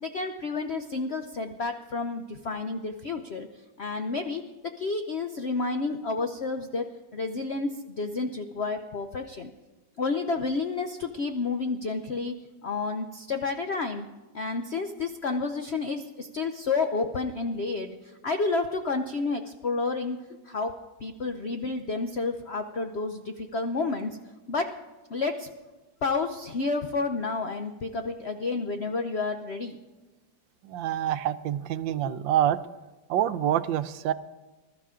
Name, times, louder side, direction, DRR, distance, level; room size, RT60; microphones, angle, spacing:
voice 1, 0.0-3.5 3.8-9.5 10.0-12.4 12.6-14.1 14.3-18.0 18.2-20.7 21.0-24.2 24.5-24.7 25.1-25.5 26.0-29.8 32.0-32.1, left 3 dB, 60° left, 6 dB, 0.7 m, -30 dB
voice 2, 30.6-32.6 33.1-34.1, right 11 dB, 80° right, 12 dB, 1.4 m, -26 dB
20.5 x 12.5 x 3.7 m, 1.2 s
omnidirectional pair, 2.1 m